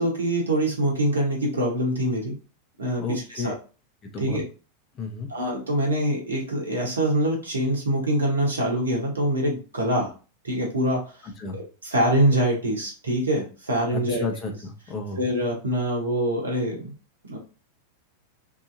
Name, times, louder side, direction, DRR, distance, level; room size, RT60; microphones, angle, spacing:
voice 1, 0.0-2.3 2.8-3.5 4.2-4.4 5.3-10.1 10.4-11.0 11.5-14.2 15.1-16.9 17.3-17.4, right 1 dB, 70° right, -1 dB, 1.1 m, -24 dB
voice 2, 3.0-3.5 4.1-4.4 5.0-5.3 11.4-11.6 13.9-15.2, left 4 dB, 25° left, 2 dB, 0.9 m, -32 dB
2.9 x 2.6 x 2.6 m, 0.34 s
figure-of-eight pair, 90°, 0 cm